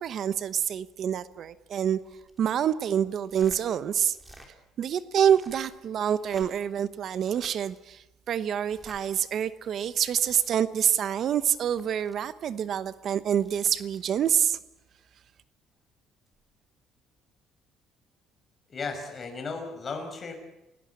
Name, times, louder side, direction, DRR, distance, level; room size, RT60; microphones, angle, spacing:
voice 1, 0.0-2.0 2.4-4.2 4.8-14.6, right 9 dB, 50° right, 14 dB, 1.0 m, -27 dB
sound 1, 2.0-2.8 3.2-3.6 4.1-4.5 5.2-5.8 6.2-6.8 7.2-7.6 8.6-9.0 9.8-10.5 11.4-12.2 13.2-14.4 16.3-16.4, right 1 dB, 10° right, 3.9 m, -53 dB
voice 2, 18.7-20.3, left 4 dB, 30° left, 4 dB, 5.8 m, -35 dB
29.0 x 17.5 x 8.5 m, 0.92 s
cardioid pair, 145°, 0 cm